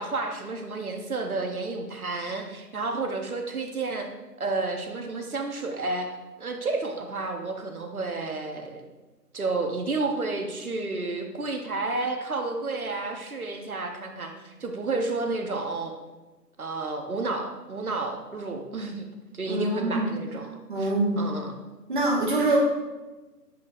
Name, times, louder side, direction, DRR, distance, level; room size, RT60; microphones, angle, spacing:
voice 1, 0.0-4.1 4.4-6.1 6.4-8.8 9.3-15.9 16.6-19.1 19.3-21.5, right 3 dB, 60° right, 4 dB, 1.0 m, -31 dB
voice 2, 19.5-20.1 20.7-21.2 21.9-22.6, right 2 dB, 30° right, -4 dB, 1.4 m, -24 dB
8.9 x 5.7 x 2.7 m, 1.2 s
figure-of-eight pair, 160°, 48 cm